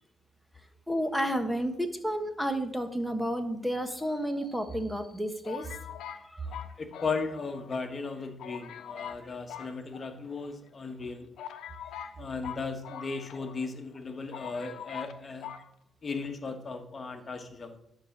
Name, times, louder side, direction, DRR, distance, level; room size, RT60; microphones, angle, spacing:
voice 1, 0.9-5.7 6.3-6.5, equal, ahead, 7 dB, 1.5 m, -31 dB
sound 1, 4.0-4.8 5.4-7.7 8.0-8.1 8.4-9.2 9.5-10.5 11.0-11.1 11.4-13.7 13.9-14.0 14.3-15.1 15.4-15.6, left 9 dB, 75° left, 1.0 m, -43 dB
voice 2, 6.4-11.3 12.2-15.5 16.0-17.8, left 4 dB, 35° left, 5 dB, 1.7 m, -36 dB
11.0 x 5.1 x 7.3 m, 0.79 s
cardioid pair, 90°, 0 cm